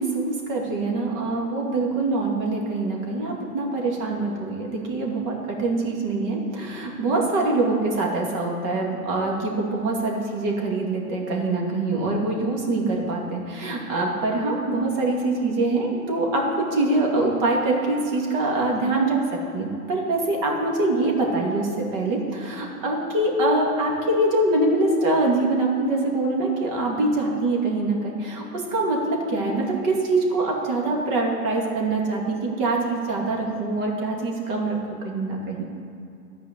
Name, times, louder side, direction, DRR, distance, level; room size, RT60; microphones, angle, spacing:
voice 1, 0.0-19.2 19.5-28.4 28.7-34.8 35.0-35.6, right 2 dB, 45° right, -1 dB, 2.4 m, -24 dB
12.0 x 5.1 x 8.1 m, 2.6 s
hypercardioid pair, 140°, 46 cm